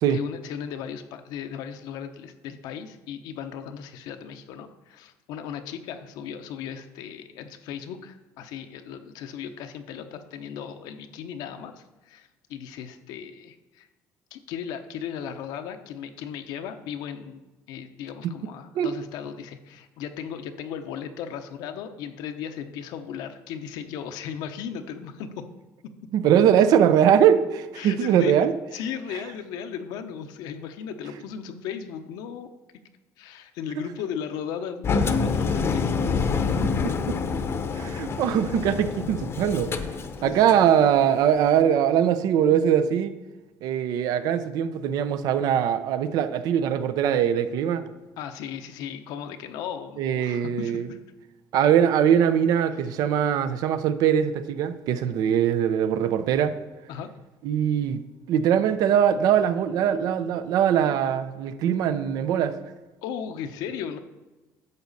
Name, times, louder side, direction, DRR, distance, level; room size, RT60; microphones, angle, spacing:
voice 1, 0.1-13.9 14.3-17.4 17.7-25.4 27.8-28.3 28.7-32.5 33.2-35.9 40.2-40.6 48.2-51.0 56.9-57.1 63.0-64.0, left 8 dB, 80° left, 7 dB, 0.8 m, -36 dB
voice 2, 26.1-28.5 36.6-37.2 37.7-39.7 40.2-43.1 43.6-47.8 50.0-50.9 51.5-56.6 57.4-58.0 58.3-62.6, right 9 dB, 70° right, 12 dB, 0.6 m, -22 dB
Engine, 34.8-40.7, left 5 dB, 40° left, 0.8 m, -27 dB
11.0 x 7.1 x 4.1 m, 1.1 s
cardioid pair, 105°, 7 cm